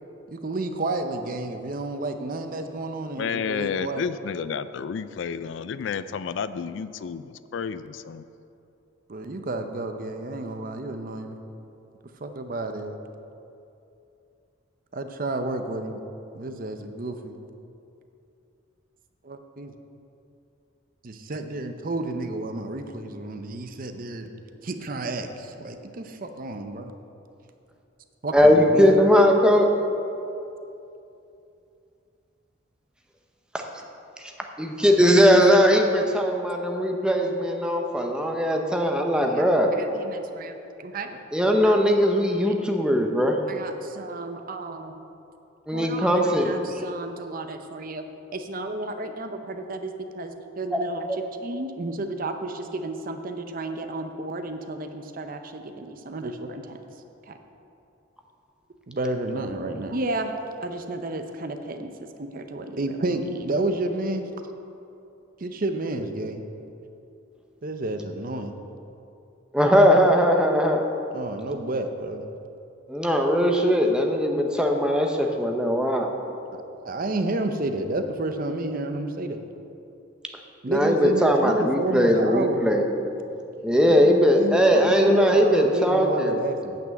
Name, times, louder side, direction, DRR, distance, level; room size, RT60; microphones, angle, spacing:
voice 1, 0.3-4.1 9.1-11.4 12.2-13.0 14.9-16.0 16.3-17.4 19.2-19.7 21.0-24.3 24.6-26.9 28.2-29.1 34.8-34.9 35.3-35.4 39.3-39.5 39.7-41.2 41.6-41.8 42.5-42.6 43.5-45.0 45.7-48.0 48.3-51.1 51.4-56.8 57.3-57.4 58.9-60.3 60.6-64.2 65.4-66.5 67.6-68.5 71.1-72.3 76.5-79.4 80.6-82.7 83.6-86.8, right 2 dB, 45° right, 7 dB, 0.6 m, -31 dB
voice 2, 3.2-8.2, left 6 dB, 65° left, 14 dB, 0.3 m, -31 dB
voice 3, 28.3-29.7 33.5-33.6 34.6-39.9 41.3-43.4 45.7-46.6 50.7-50.8 51.1-51.2 69.5-70.8 72.9-76.1 80.7-82.8 83.6-86.4, equal, 5° right, 2 dB, 0.8 m, -20 dB
9.1 x 6.0 x 7.6 m, 2.7 s
head